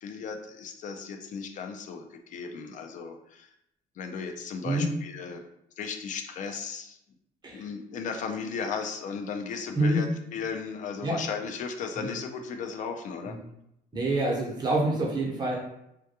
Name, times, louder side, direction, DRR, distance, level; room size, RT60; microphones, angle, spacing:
voice 1, 0.0-3.5 4.0-5.4 5.8-7.0 7.5-10.1 10.3-13.4, left 5 dB, 50° left, 6 dB, 0.4 m, -35 dB
voice 2, 9.7-10.1 11.0-11.2 12.0-12.1 13.2-13.4 13.9-15.6, right 1 dB, 25° right, -3 dB, 0.9 m, -27 dB
2.2 x 2.2 x 2.8 m, 0.80 s
cardioid pair, 110°, 17 cm